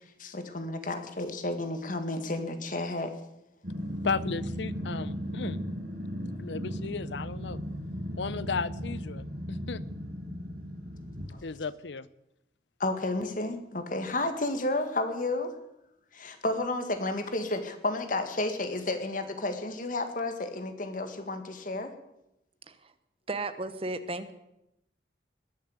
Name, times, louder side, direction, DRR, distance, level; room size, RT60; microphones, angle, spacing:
voice 1, 0.2-3.1 11.3-11.4 12.8-15.5 16.1-21.9, left 2 dB, 50° left, 7 dB, 1.9 m, -31 dB
Growling, 3.6-11.3, equal, 60° right, 6.1 m, -36 dB
voice 2, 4.0-5.6 6.4-7.6 8.2-9.8 11.4-12.1, left 4 dB, 80° left, 18 dB, 0.7 m, -34 dB
voice 3, 23.3-24.3, right 2 dB, 30° right, 11 dB, 1.1 m, -34 dB
21.0 x 7.3 x 8.2 m, 0.86 s
head